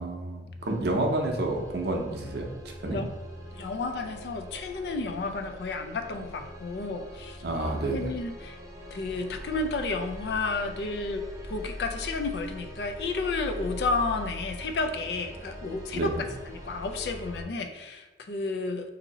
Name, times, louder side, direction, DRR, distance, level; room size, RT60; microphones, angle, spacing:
voice 1, 0.0-3.0 7.4-8.1 15.9-16.3, right 2 dB, 60° right, 1 dB, 0.6 m, -29 dB
sound 1, 0.6-17.4, equal, 20° right, 0.5 m, -42 dB
voice 2, 3.5-7.4 7.9-8.6 8.9-16.1 16.5-18.9, left 3 dB, 65° left, 6 dB, 0.4 m, -32 dB
2.7 x 2.7 x 4.0 m, 1.1 s
head